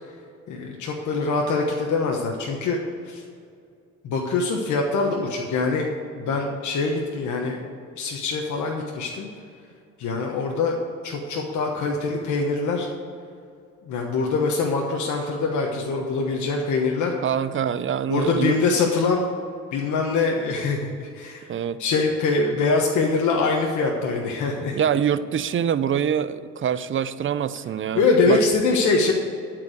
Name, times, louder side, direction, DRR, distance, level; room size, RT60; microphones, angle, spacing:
voice 1, 0.5-2.8 3.0-3.2 4.0-5.9 6.2-7.7 8.0-9.3 10.0-10.8 11.0-12.9 13.9-17.1 18.1-19.3 19.7-21.5 21.8-24.8 27.9-29.1, left 3 dB, 75° left, 0 dB, 1.2 m, -23 dB
voice 2, 17.2-18.6 21.5-21.8 24.7-28.4, right 8 dB, 40° right, 14 dB, 0.5 m, -25 dB
11.5 x 4.8 x 7.9 m, 2.4 s
cardioid pair, 90°, 30 cm